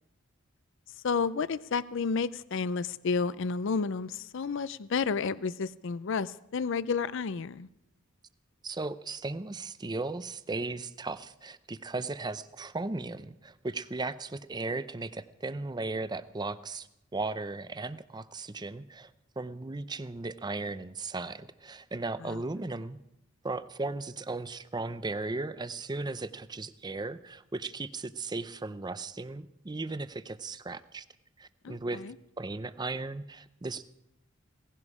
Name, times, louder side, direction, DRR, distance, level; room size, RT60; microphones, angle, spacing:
voice 1, 1.0-7.7 22.2-22.4 31.6-32.1, left 5 dB, 60° left, 18 dB, 0.5 m, -31 dB
voice 2, 8.6-19.1 19.4-23.0 23.4-31.0 31.4-32.0 32.4-33.8, right 3 dB, 20° right, 13 dB, 0.6 m, -36 dB
18.0 x 16.0 x 4.9 m, 0.85 s
head